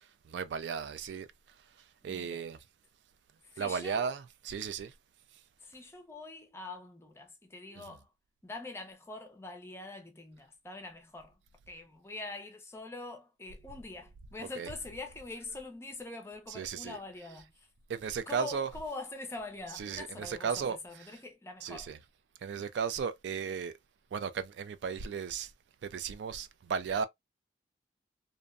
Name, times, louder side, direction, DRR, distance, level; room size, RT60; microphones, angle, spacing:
voice 1, 0.3-1.3 2.0-2.6 3.6-4.9 14.6-14.7 16.5-17.0 17.9-18.7 19.8-20.8 21.6-22.0 22.4-23.7 24.1-25.5 25.8-27.0, right 6 dB, 70° right, 0.3 m, -35 dB
voice 2, 2.0-2.4 3.4-4.1 5.6-8.1 8.4-11.4 11.7-17.7 18.3-21.9, left 3 dB, 15° left, 0.4 m, -44 dB
2.5 x 2.0 x 2.4 m
head